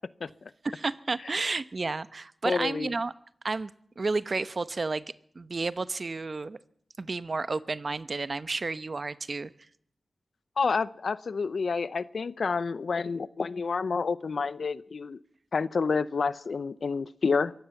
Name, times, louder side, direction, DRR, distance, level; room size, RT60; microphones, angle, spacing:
voice 1, 0.6-3.1 3.4-3.7 4.0-5.0 5.3-6.6 7.0-9.5, right 3 dB, 55° right, 15 dB, 1.0 m, -31 dB
voice 2, 2.4-2.9 10.6-15.2 15.5-17.5, left 4 dB, 80° left, 17 dB, 0.8 m, -29 dB
23.5 x 16.0 x 7.2 m, 0.64 s
cardioid pair, 50°, 0 cm